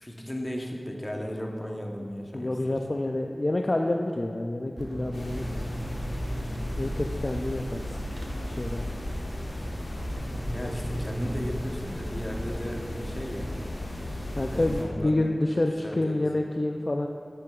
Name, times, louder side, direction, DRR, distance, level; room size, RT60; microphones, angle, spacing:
voice 1, 0.0-2.8 10.5-13.5 14.5-15.1 15.8-16.2, equal, 25° left, 0 dB, 0.9 m, -35 dB
voice 2, 2.3-5.7 6.8-8.0 8.4-8.8 14.4-17.1, left 1 dB, 45° left, 3 dB, 0.3 m, -28 dB
sound 1, 4.8-11.6, equal, 45° right, 0.8 m, -37 dB
sound 2, 5.1-14.8, left 1 dB, 85° left, 1.1 m, -35 dB
9.3 x 7.6 x 2.3 m, 2.3 s
wide cardioid pair, 60°, 0 cm